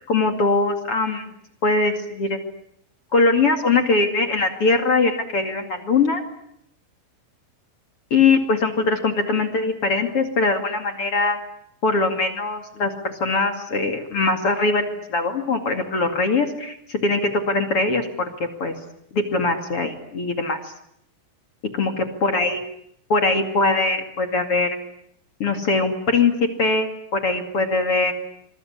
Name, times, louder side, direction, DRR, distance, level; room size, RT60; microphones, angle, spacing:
voice 1, 0.1-1.3 1.6-2.4 3.1-6.2 8.1-11.4 11.8-18.7 19.1-20.7 21.7-22.6 23.1-24.8 25.4-28.1, left 3 dB, 40° left, 6 dB, 2.2 m, -21 dB
26.0 x 23.0 x 9.9 m, 0.75 s
omnidirectional pair, 5.8 m